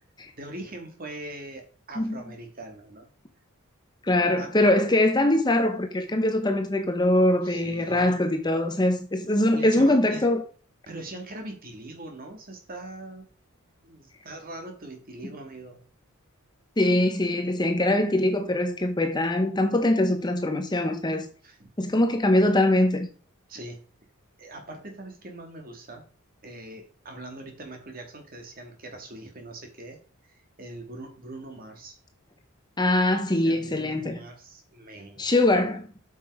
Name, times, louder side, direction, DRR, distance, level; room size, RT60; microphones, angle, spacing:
voice 1, 0.3-3.1 4.4-4.5 7.3-8.2 9.4-10.2 10.9-13.3 13.8-15.8 21.4-21.7 23.5-23.8 24.4-26.1 26.4-30.0 30.2-32.0 33.3-35.3 35.6-35.7, right 2 dB, 40° right, 2.2 m, -42 dB
voice 2, 4.0-10.4 16.8-21.3 21.8-23.1 32.8-34.2 35.2-36.0, left 1 dB, 20° left, 0.9 m, -23 dB
8.3 x 6.1 x 4.8 m
head